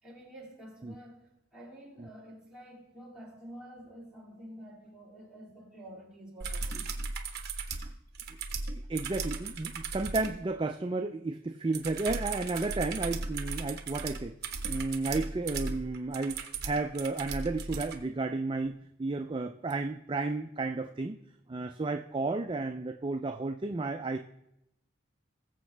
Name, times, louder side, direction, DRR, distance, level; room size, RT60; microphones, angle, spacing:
voice 1, 0.0-6.9, right 1 dB, 5° right, 2.7 m, -49 dB
sound 1, 6.4-10.4 11.7-18.0 19.7-19.8, right 4 dB, 45° right, 1.0 m, -37 dB
voice 2, 8.9-14.4 14.7-21.2 21.5-24.2, right 3 dB, 25° right, 0.3 m, -32 dB
20.5 x 7.2 x 3.3 m
head